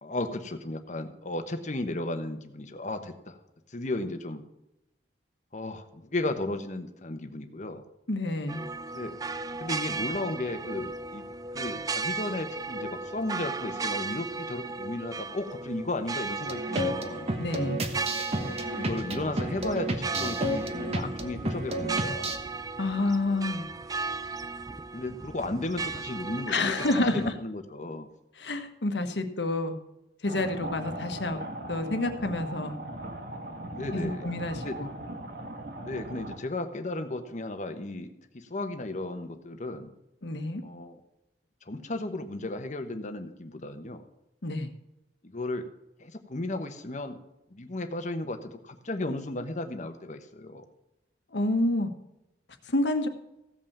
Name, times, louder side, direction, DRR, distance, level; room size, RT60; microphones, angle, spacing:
voice 1, 0.0-3.4 3.7-4.4 5.5-7.8 8.9-9.2 9.6-11.2 11.5-17.3 18.3-22.3 24.9-28.1 33.7-34.3 34.6-34.8 35.8-38.1 38.3-39.9 40.6-41.0 41.7-44.0 45.2-45.7 46.0-47.2 47.5-50.6, left 2 dB, 45° left, 7 dB, 1.1 m, -34 dB
voice 2, 8.1-8.7 17.4-17.8 22.8-23.7 26.5-27.3 28.4-29.8 30.2-31.4 31.7-32.7 33.9-34.9 40.2-40.6 44.4-44.7 51.3-51.9 52.7-53.1, left 2 dB, 75° left, 7 dB, 1.3 m, -28 dB
sound 1, 8.5-27.3, right 4 dB, 20° right, 0.3 m, -36 dB
sound 2, 16.5-22.4, right 1 dB, 35° right, 1.2 m, -32 dB
sound 3, 30.2-36.4, right 1 dB, 60° right, 1.7 m, -39 dB
15.5 x 5.5 x 7.3 m, 0.89 s
head